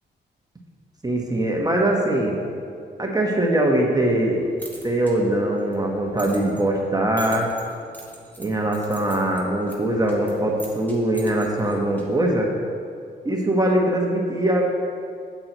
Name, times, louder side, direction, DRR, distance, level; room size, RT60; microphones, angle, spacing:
voice 1, 1.0-2.3 3.0-4.5 4.8-7.5 8.4-12.5 13.2-14.6, right 1 dB, 20° right, -1 dB, 1.1 m, -22 dB
sound 1, 4.3-12.3, right 1 dB, 10° left, 2.0 m, -45 dB
8.5 x 8.0 x 3.0 m, 2.3 s
supercardioid pair, 60°, 20 cm